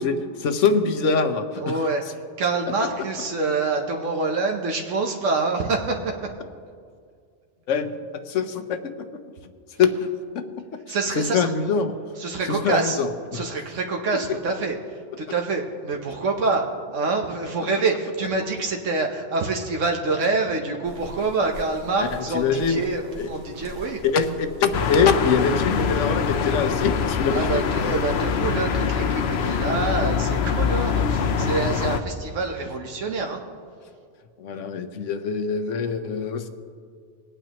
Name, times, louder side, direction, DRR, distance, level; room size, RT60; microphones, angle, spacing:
voice 1, 0.0-1.8 7.7-7.9 8.3-8.8 9.8-10.1 10.3-10.4 10.9-11.0 11.3-11.9 12.5-13.4 22.3-22.8 23.1-23.3 24.1-27.5 34.4-36.5, left 5 dB, 80° left, 9 dB, 1.2 m, -23 dB
voice 2, 1.6-2.0 2.4-6.3 10.9-11.5 12.2-13.0 13.3-24.0 27.3-33.4, right 3 dB, 85° right, 2 dB, 1.3 m, -26 dB
sound 1, 20.8-28.4, equal, 60° right, 1.8 m, -42 dB
sound 2, 24.7-32.0, left 6 dB, 65° left, 0.9 m, -24 dB
21.5 x 9.0 x 2.9 m, 2.2 s
omnidirectional pair, 1.2 m